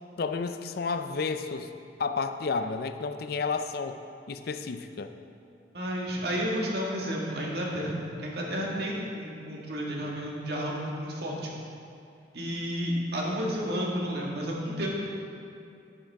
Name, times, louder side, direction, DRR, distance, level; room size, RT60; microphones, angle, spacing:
voice 1, 0.2-1.7 2.0-4.0 4.3-5.1, left 4 dB, 55° left, 8 dB, 0.4 m, -31 dB
voice 2, 5.7-11.5 12.3-14.9, equal, 60° right, -3 dB, 1.7 m, -31 dB
10.0 x 9.9 x 3.5 m, 2.5 s
head